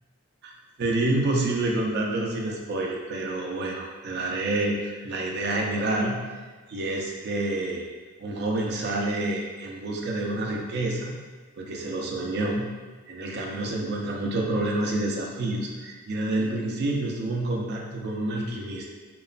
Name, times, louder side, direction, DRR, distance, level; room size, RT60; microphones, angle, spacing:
voice 1, 0.8-6.2 6.7-7.8 8.2-11.2 11.6-12.7 13.1-18.9, right 2 dB, 50° right, 0 dB, 0.4 m, -28 dB
2.9 x 2.1 x 2.4 m, 1.4 s
head